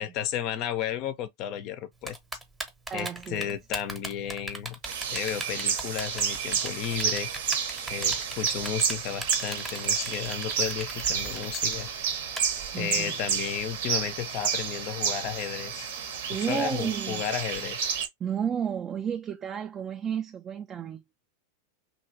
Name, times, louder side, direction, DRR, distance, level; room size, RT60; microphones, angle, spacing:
voice 1, 0.0-2.2 2.9-4.8 5.1-7.3 7.9-11.9 12.8-15.9 16.5-17.9, left 10 dB, 40° left, 0.5 m, -33 dB
Typing, 2.1-12.4, right 2 dB, 10° right, 0.8 m, -38 dB
voice 2, 2.9-3.5 12.7-13.1 16.3-17.2 18.2-21.0, right 8 dB, 25° right, 0.3 m, -32 dB
sound 1, 4.8-18.1, right 7 dB, 55° right, 0.7 m, -30 dB
3.0 x 2.6 x 2.4 m
figure-of-eight pair, 90°, 0 cm